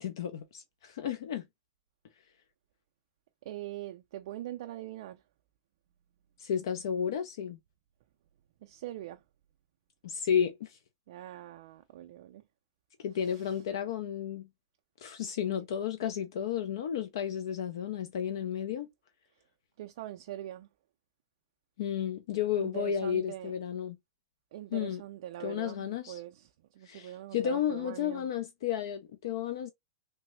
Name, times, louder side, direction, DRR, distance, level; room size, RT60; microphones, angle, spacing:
voice 1, 0.0-1.5 6.4-7.6 10.0-10.8 13.0-14.5 15.0-18.9 21.8-24.0 24.7-25.0 25.4-26.2 26.8-29.7, left 8 dB, 65° left, 0.4 m, -32 dB
voice 2, 3.4-5.2 8.6-9.2 11.1-12.4 13.2-13.6 15.5-15.6 19.8-20.7 22.6-23.5 24.5-28.3, right 13 dB, 60° right, 0.3 m, -43 dB
3.3 x 2.0 x 3.0 m
hypercardioid pair, 140°, 3 cm